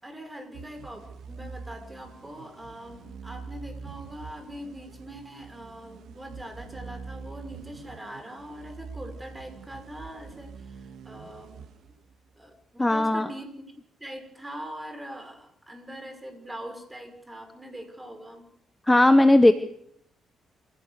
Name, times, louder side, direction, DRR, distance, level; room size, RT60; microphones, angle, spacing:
voice 1, 0.0-11.7 12.4-18.5, equal, 15° right, 6 dB, 5.9 m, -42 dB
sound 1, 0.5-12.4, right 5 dB, 75° right, 1.8 m, -44 dB
voice 2, 12.8-13.3 18.9-19.5, left 1 dB, 10° left, 11 dB, 1.1 m, -17 dB
25.5 x 16.0 x 6.8 m, 0.67 s
cardioid pair, 90°, 0 cm